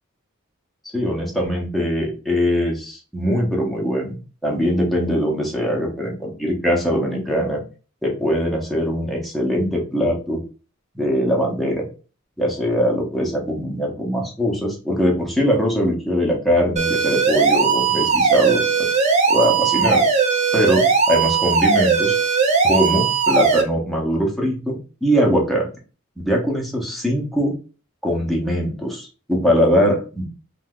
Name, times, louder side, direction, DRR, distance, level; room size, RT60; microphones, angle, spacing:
voice 1, 0.9-4.2 4.4-7.6 8.0-10.4 10.9-11.8 12.4-18.9 19.3-20.0 20.5-22.2 22.6-25.7 26.2-27.5 28.0-30.2, equal, ahead, -2 dB, 0.7 m, -21 dB
sound 1, 16.8-23.6, right 5 dB, 35° right, 0.6 m, -18 dB
2.6 x 2.3 x 3.6 m, 0.35 s
head